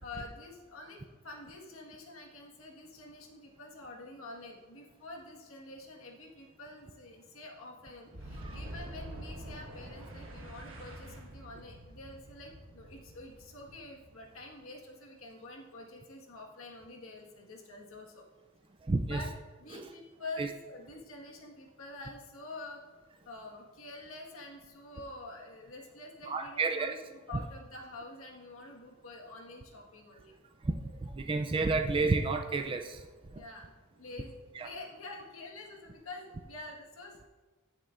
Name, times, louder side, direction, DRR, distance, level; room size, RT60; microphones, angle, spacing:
voice 1, 0.0-18.3 19.0-19.3 19.5-30.3 33.3-37.3, left 2 dB, 70° left, 0 dB, 1.5 m, -47 dB
Boom, 8.1-14.7, right 1 dB, 65° right, 1.4 m, -46 dB
voice 2, 18.8-19.2 19.7-19.9 20.4-20.5 26.3-27.0 30.6-30.7 31.0-33.0 33.3-33.4 34.6-34.7, right 3 dB, 25° right, 5 dB, 0.4 m, -30 dB
14.0 x 7.4 x 2.5 m, 1.3 s
head